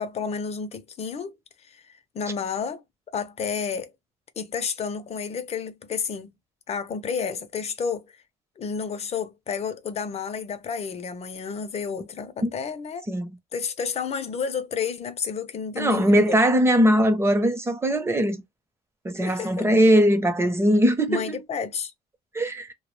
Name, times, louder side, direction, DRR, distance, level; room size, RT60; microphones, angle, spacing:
voice 1, 0.0-1.4 1.7-2.8 3.1-3.9 4.4-6.4 6.7-8.1 8.6-13.1 13.5-16.4 19.2-19.7 21.1-21.9, left 6 dB, 40° left, 0.6 m, -31 dB
voice 2, 15.8-18.4 19.0-21.4 22.3-22.7, equal, 15° right, 0.7 m, -20 dB
2.2 x 2.2 x 3.1 m
cardioid pair, 110°, 17 cm